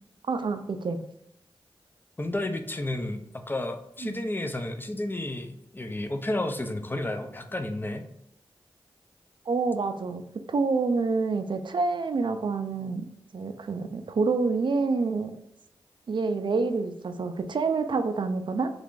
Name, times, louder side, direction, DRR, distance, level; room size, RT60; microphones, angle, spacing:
voice 1, 0.3-1.0 4.0-4.2 9.5-10.2 10.5-13.0 13.3-15.3 16.1-18.7, right 4 dB, 55° right, 8 dB, 0.4 m, -27 dB
voice 2, 2.2-8.0, left 1 dB, 20° left, 7 dB, 0.5 m, -32 dB
3.2 x 2.4 x 3.7 m, 0.80 s
cardioid pair, 55°, 9 cm